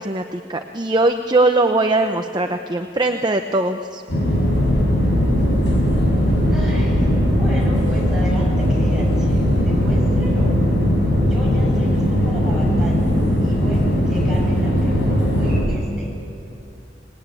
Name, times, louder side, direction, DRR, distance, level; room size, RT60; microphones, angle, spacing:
voice 1, 0.0-4.0, right 2 dB, 25° right, 6 dB, 0.7 m, -20 dB
sound 1, 4.1-15.6, equal, 70° left, 6.7 m, -18 dB
voice 2, 6.5-7.1 7.3-10.5 11.3-13.1 13.4-16.1, equal, ahead, -5 dB, 7.6 m, -34 dB
26.0 x 20.0 x 9.1 m, 2.7 s
head